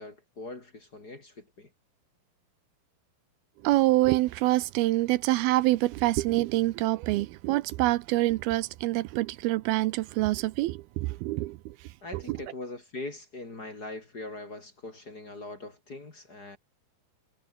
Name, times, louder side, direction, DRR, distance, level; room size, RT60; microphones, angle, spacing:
voice 1, 0.0-1.7 12.0-16.6, left 2 dB, 30° left, 2.8 m, -41 dB
voice 2, 3.6-11.8 12.3-12.4, right 18 dB, 80° right, 2.5 m, -26 dB
omnidirectional pair, 4.5 m